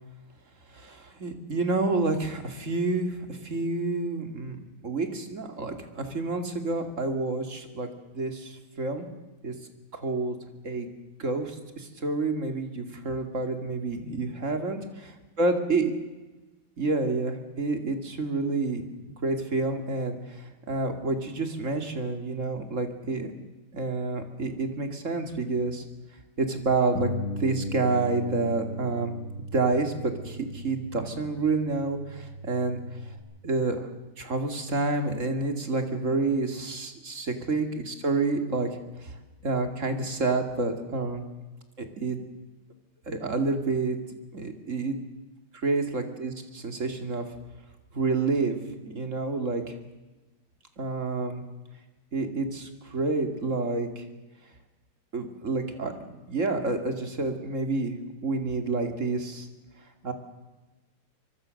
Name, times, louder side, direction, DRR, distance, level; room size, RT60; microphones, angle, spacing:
voice 1, 0.7-9.1 9.4-9.5 9.9-10.4 10.6-10.9 11.2-15.9 16.8-18.8 19.2-23.3 23.7-25.8 26.4-27.1 27.4-29.1 29.5-32.8 33.4-33.9 34.2-38.7 39.0-39.1 39.4-41.2 41.8-42.2 43.1-44.0 44.3-45.0 45.5-47.3 47.9-48.6 48.8-49.7 50.8-51.4 52.1-54.1 55.1-58.0 58.2-59.5 60.0-60.1, right 3 dB, 35° right, 6 dB, 2.7 m, -29 dB
Bass guitar, 26.9-33.2, equal, 70° left, 6.4 m, -37 dB
25.0 x 22.5 x 6.6 m, 1.2 s
omnidirectional pair, 2.4 m